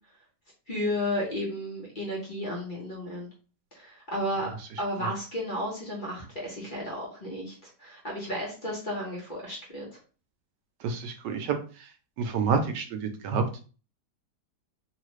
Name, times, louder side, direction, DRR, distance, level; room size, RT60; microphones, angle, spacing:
voice 1, 0.7-3.3 3.7-9.9, equal, 35° left, -4 dB, 0.9 m, -33 dB
voice 2, 10.8-11.5 12.2-13.4, right 5 dB, 85° right, 6 dB, 1.2 m, -28 dB
3.2 x 2.4 x 3.1 m, 0.37 s
omnidirectional pair, 1.8 m